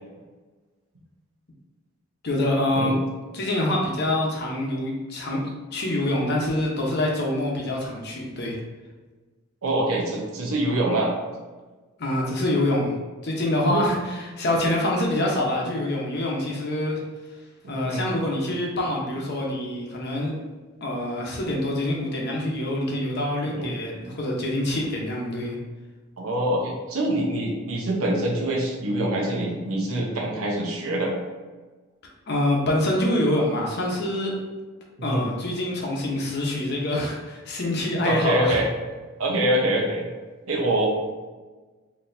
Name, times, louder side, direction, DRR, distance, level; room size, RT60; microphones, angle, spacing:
voice 1, 2.2-3.0 3.3-5.4 5.7-8.6 12.0-12.9 13.2-17.0 17.7-20.3 20.8-25.6 32.3-34.3 35.0-38.6, left 1 dB, 50° left, -1 dB, 0.8 m, -25 dB
voice 2, 9.6-11.1 13.7-14.0 17.7-18.1 23.6-23.7 26.2-31.1 35.0-35.3 38.0-38.7 39.2-40.1 40.5-40.9, right 1 dB, 85° right, -1 dB, 0.9 m, -25 dB
4.3 x 2.8 x 2.6 m, 1.3 s
head